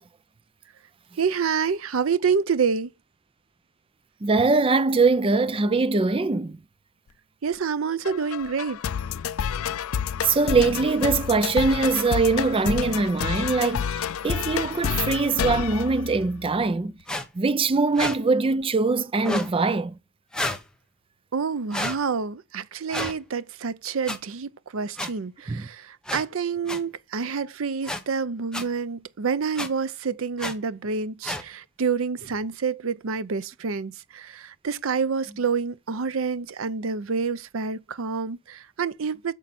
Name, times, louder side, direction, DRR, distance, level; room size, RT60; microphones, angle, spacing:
voice 1, 1.2-2.9 7.4-8.8 21.3-39.3, right 5 dB, 70° right, 0.6 m, -28 dB
voice 2, 4.2-6.6 10.2-16.9 17.3-20.0 25.5-25.7, right 3 dB, 25° right, 0.4 m, -22 dB
sound 1, 8.0-16.6, left 8 dB, 80° left, 0.4 m, -29 dB
sound 2, 17.1-17.2 17.9-18.2 19.2-19.5 20.3-20.6 21.7-22.0 22.9-23.1 24.1-24.2 25.0-25.1 26.1-26.2 26.7-26.8 27.8-28.0 28.5-28.6 29.6-29.7 30.4-30.5 31.2-31.4, left 1 dB, 5° left, 1.2 m, -29 dB
9.1 x 6.4 x 4.2 m
head